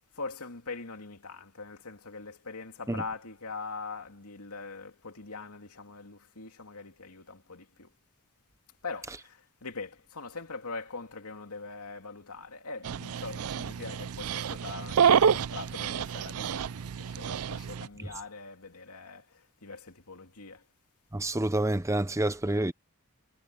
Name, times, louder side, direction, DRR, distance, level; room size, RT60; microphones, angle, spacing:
voice 1, 0.1-7.9 8.8-20.6, left 4 dB, 85° left, 2.7 m, -42 dB
Dog, 12.8-17.9, right 7 dB, 80° right, 0.5 m, -28 dB
voice 2, 21.1-22.7, right 1 dB, 15° right, 0.7 m, -28 dB
head